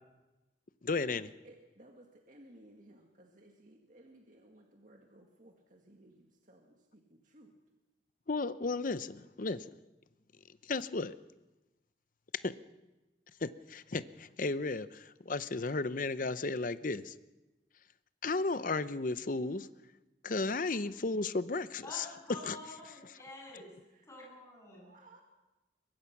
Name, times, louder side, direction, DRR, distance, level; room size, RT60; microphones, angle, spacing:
voice 1, 0.8-1.3 8.3-9.6 10.6-11.1 12.4-12.5 13.4-17.1 18.2-19.7 20.2-22.1 22.4-22.6, left 3 dB, 45° left, 14 dB, 0.7 m, -34 dB
voice 2, 1.4-7.5 23.8-24.1 24.8-25.2, right 1 dB, 45° right, 1 dB, 2.0 m, -59 dB
voice 3, 21.8-23.8 24.0-24.9, left 1 dB, 15° left, -2 dB, 7.7 m, -48 dB
23.5 x 21.5 x 6.0 m, 1.1 s
head